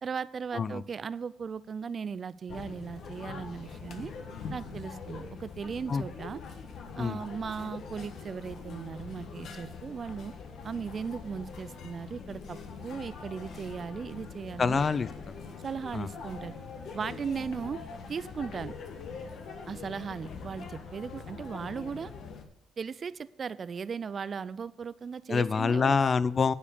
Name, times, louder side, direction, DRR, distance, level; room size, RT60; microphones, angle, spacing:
voice 1, 0.0-4.1 4.5-6.4 7.0-10.3 10.6-14.8 15.6-16.5 16.9-17.8 18.1-18.8 19.7-22.1 22.8-26.0, right 6 dB, 45° right, 17 dB, 0.3 m, -37 dB
sound 1, 2.5-22.4, left 5 dB, 70° left, 1.3 m, -43 dB
voice 2, 14.6-15.3 15.9-16.1 25.3-26.5, left 5 dB, 40° left, 17 dB, 0.4 m, -26 dB
9.9 x 4.9 x 6.9 m, 0.76 s
cardioid pair, 90°, 0 cm